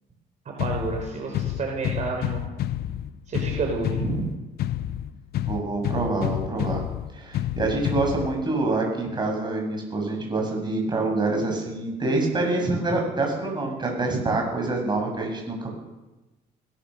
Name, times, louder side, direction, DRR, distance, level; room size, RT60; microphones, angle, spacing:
voice 1, 0.4-2.4 3.3-4.0, right 4 dB, 45° right, 1 dB, 4.5 m, -30 dB
sound 1, 0.6-8.6, left 12 dB, 70° left, 1.0 m, -30 dB
voice 2, 5.5-6.8 7.1-15.8, right 2 dB, 25° right, 1 dB, 7.7 m, -26 dB
21.0 x 18.5 x 6.7 m, 1.1 s
cardioid pair, 110°, 17 cm